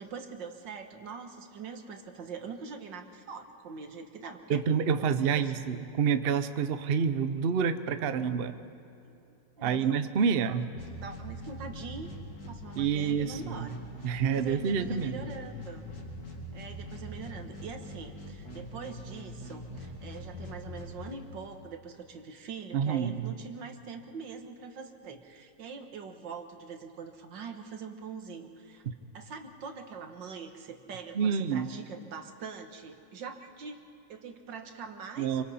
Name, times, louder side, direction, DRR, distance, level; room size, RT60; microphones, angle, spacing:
voice 1, 0.0-4.6 4.9-5.7 9.6-10.0 10.9-12.1 12.5-13.8 14.1-15.8 16.5-28.8 29.1-35.4, right 5 dB, 90° right, 5 dB, 2.1 m, -43 dB
voice 2, 4.5-8.5 9.6-10.7 12.8-13.7 14.0-15.3 22.7-23.3 28.9-29.0 31.1-31.7 35.2-35.4, right 6 dB, 50° right, 10 dB, 0.8 m, -28 dB
sound 1, 10.7-21.7, left 1 dB, 60° left, 2.8 m, -43 dB
28.0 x 24.5 x 4.3 m, 2.7 s
omnidirectional pair, 1.9 m